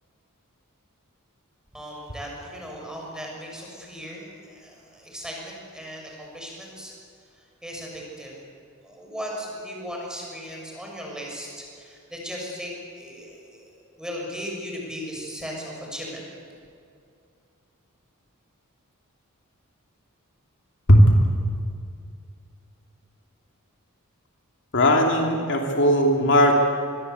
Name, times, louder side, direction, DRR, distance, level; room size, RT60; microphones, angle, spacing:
voice 1, 1.7-6.9 7.6-8.4 8.8-13.7 14.0-16.2, equal, 5° right, -1 dB, 6.8 m, -37 dB
voice 2, 20.9-21.2 24.7-26.5, equal, 60° left, 1 dB, 2.9 m, -17 dB
25.5 x 22.0 x 8.2 m, 2.4 s
head